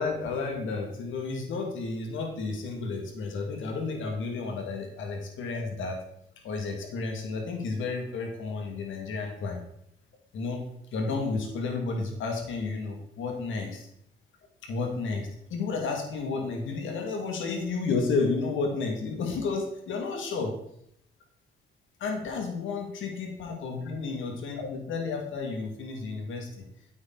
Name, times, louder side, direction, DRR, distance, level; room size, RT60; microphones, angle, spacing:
voice 1, 0.0-6.0 6.4-9.6 10.3-10.6 10.9-13.9 14.6-20.5 22.0-26.6, left 4 dB, 80° left, 3 dB, 2.4 m, -32 dB
9.0 x 8.7 x 4.1 m, 0.74 s
cardioid pair, 90°, 20 cm